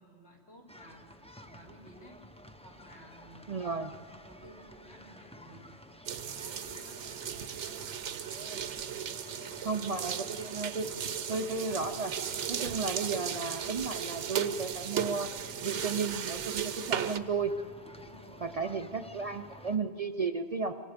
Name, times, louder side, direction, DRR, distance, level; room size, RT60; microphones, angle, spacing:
voice 1, 0.0-2.2 2.6-3.6 4.2-5.8 6.3-7.0 9.1-9.8 17.8-18.6, equal, 75° left, -1 dB, 4.0 m, -55 dB
sound 1, 0.7-19.8, equal, 5° left, 0.7 m, -52 dB
voice 2, 3.5-3.9 9.7-10.9 11.3-12.1 12.5-15.3 15.6-17.5 18.4-20.7, right 4 dB, 45° right, 7 dB, 0.5 m, -33 dB
sound 2, 6.1-17.2, right 8 dB, 80° right, 1.1 m, -36 dB
25.0 x 24.0 x 5.1 m, 2.1 s
omnidirectional pair, 1.2 m